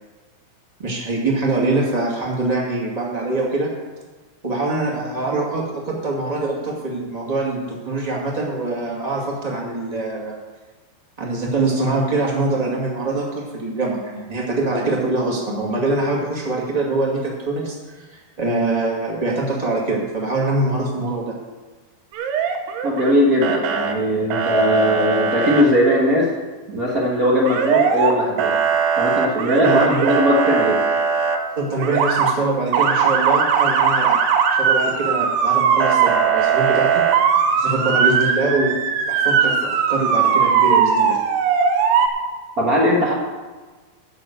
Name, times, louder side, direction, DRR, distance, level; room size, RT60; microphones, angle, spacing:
voice 1, 0.8-3.7 4.4-10.3 11.2-17.7 18.4-21.3 29.6-30.2 31.5-34.2 34.5-37.0 37.5-38.7 39.1-41.2, right 2 dB, 15° right, -2 dB, 1.3 m, -23 dB
Motor vehicle (road) / Siren, 22.1-23.1 23.4-23.9 24.3-25.6 27.5-28.1 28.4-31.4 31.8-32.3 32.7-42.1, right 7 dB, 85° right, 3.0 m, -19 dB
voice 2, 22.8-26.3 26.7-28.6 29.0-30.8 42.6-43.1, equal, 70° right, -5 dB, 0.8 m, -19 dB
12.0 x 6.5 x 8.0 m, 1.3 s
omnidirectional pair, 4.5 m